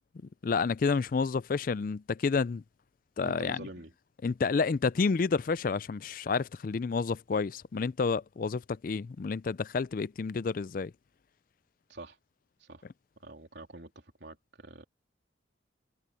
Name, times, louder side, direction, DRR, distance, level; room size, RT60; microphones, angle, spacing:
voice 1, 0.4-2.6 3.2-3.7 4.2-10.9, left 4 dB, 45° left, 0.4 m, -29 dB
voice 2, 3.2-3.9 11.9-12.2 12.6-12.8 13.2-14.8, right 2 dB, 60° right, 3.5 m, -46 dB
head